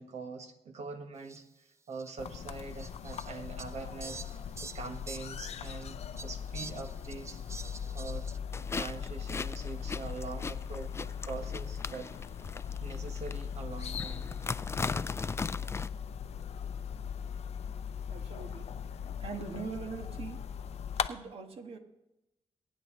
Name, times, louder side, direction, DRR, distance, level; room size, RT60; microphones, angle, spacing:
voice 1, 0.0-4.3 4.6-7.4 7.6-8.3 8.6-12.2 12.8-14.3, right 4 dB, 80° right, 5 dB, 1.7 m, -43 dB
Fowl, 1.3-1.4 1.9-2.1 2.8-5.8 6.2-8.4, right 3 dB, 25° right, 0.6 m, -47 dB
sound 1, 2.2-21.1, left 7 dB, 70° left, 0.6 m, -39 dB
sound 2, 8.5-15.9, left 4 dB, 25° left, 0.4 m, -39 dB
voice 2, 18.1-18.7 19.2-20.4 20.9-21.8, right 5 dB, 60° right, 5 dB, 1.6 m, -42 dB
22.5 x 9.4 x 3.2 m, 0.90 s
cardioid pair, 85°, 11 cm